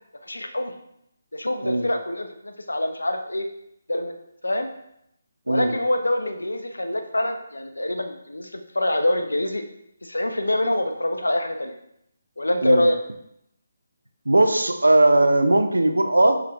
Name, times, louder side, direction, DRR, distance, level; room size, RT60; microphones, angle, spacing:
voice 1, 0.2-0.7 1.3-3.5 3.9-4.1 4.4-4.7 5.5-9.6 10.0-11.8 12.4-13.0, left 1 dB, 90° left, 6 dB, 0.5 m, -25 dB
voice 2, 14.3-16.4, right 2 dB, 90° right, 7 dB, 0.4 m, -18 dB
4.7 x 3.1 x 2.3 m, 0.78 s
figure-of-eight pair, 155°, 0 cm